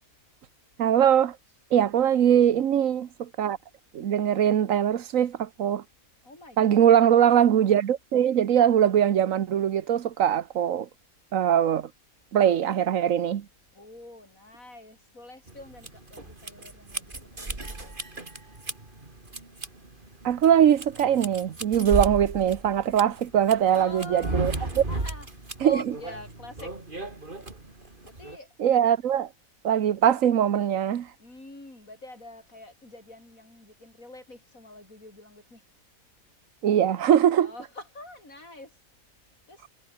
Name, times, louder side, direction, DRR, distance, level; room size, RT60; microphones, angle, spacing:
voice 1, 0.8-1.4 1.7-3.6 3.9-5.8 6.6-10.9 11.3-11.9 12.3-13.5 20.2-24.5 25.6-25.8 28.6-29.3 29.6-31.1 36.6-37.5, right 9 dB, 75° right, 1.3 m, -21 dB
voice 2, 2.0-2.3 6.2-6.8 13.7-17.9 23.7-25.3 25.6-26.7 28.0-28.5 31.2-35.6 37.4-38.7 39.5-39.6, left 2 dB, 85° left, 7.3 m, -45 dB
sound 1, 15.5-28.4, right 2 dB, 40° right, 3.4 m, -35 dB
omnidirectional pair, 1.4 m